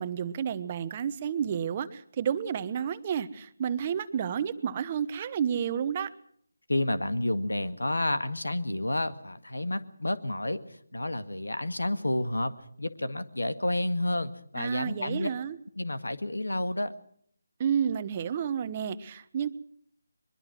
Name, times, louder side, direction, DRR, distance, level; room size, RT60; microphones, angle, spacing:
voice 1, 0.0-6.1 14.5-15.6 17.6-19.5, right 8 dB, 30° right, 13 dB, 1.1 m, -30 dB
voice 2, 6.7-10.6 10.9-15.3 15.8-16.9, left 1 dB, 80° left, 12 dB, 1.9 m, -30 dB
22.0 x 22.0 x 6.2 m, 0.64 s
figure-of-eight pair, 155°, 0 cm